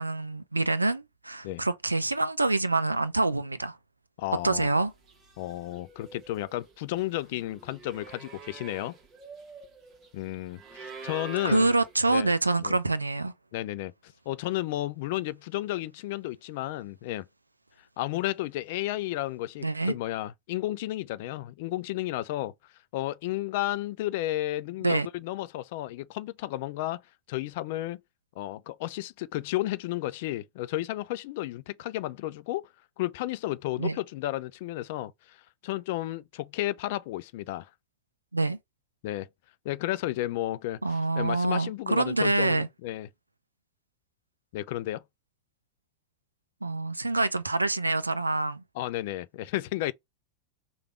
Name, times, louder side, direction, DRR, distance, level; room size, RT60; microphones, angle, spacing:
voice 1, 0.0-3.8 4.4-4.9 11.4-13.3 19.6-19.9 24.8-25.1 33.8-34.0 38.3-38.6 40.8-42.7 46.6-48.6, right 2 dB, 80° right, 0.3 m, -26 dB
voice 2, 4.2-4.7 5.4-9.0 10.1-11.7 12.1-12.3 12.6-12.8 13.5-17.3 18.0-22.5 22.9-27.0 27.3-28.0 28.4-32.7 33.0-35.4 35.6-37.7 39.0-39.3 39.6-43.1 44.5-45.0 48.8-49.9, left 16 dB, 50° left, 0.3 m, -32 dB
sound 1, 4.6-4.8 5.1-12.2, right 4 dB, 30° right, 1.1 m, -46 dB
3.3 x 2.3 x 4.2 m
figure-of-eight pair, 90°, 0 cm